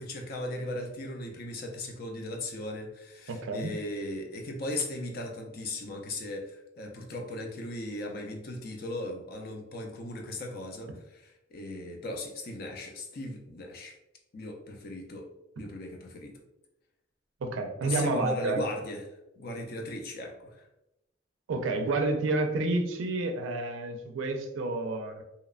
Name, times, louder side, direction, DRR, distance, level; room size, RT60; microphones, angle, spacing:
voice 1, 0.0-13.9 14.3-15.3 15.6-16.3 17.8-19.0 19.4-20.6, left 1 dB, 50° left, 2 dB, 0.4 m, -37 dB
voice 2, 3.3-3.7 17.4-18.6 21.5-25.2, right 2 dB, 85° right, 4 dB, 0.4 m, -30 dB
2.8 x 2.1 x 2.3 m, 0.90 s
head